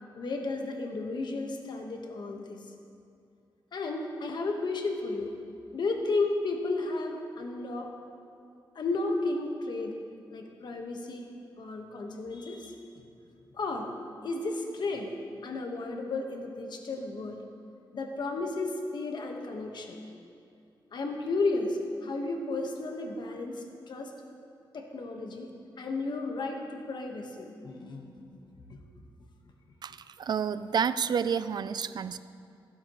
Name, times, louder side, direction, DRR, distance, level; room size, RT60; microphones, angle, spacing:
voice 1, 0.2-2.6 3.7-5.4 5.7-7.9 8.7-10.0 10.3-11.3 11.6-12.8 13.5-13.9 14.2-15.1 15.4-17.4 17.9-20.0 20.9-24.1 24.7-25.5 25.8-28.4 28.7-28.8, left 3 dB, 60° left, 3 dB, 1.3 m, -33 dB
voice 2, 29.8-32.2, right 7 dB, 55° right, 14 dB, 0.4 m, -30 dB
15.5 x 11.0 x 3.1 m, 2.6 s
cardioid pair, 95°, 9 cm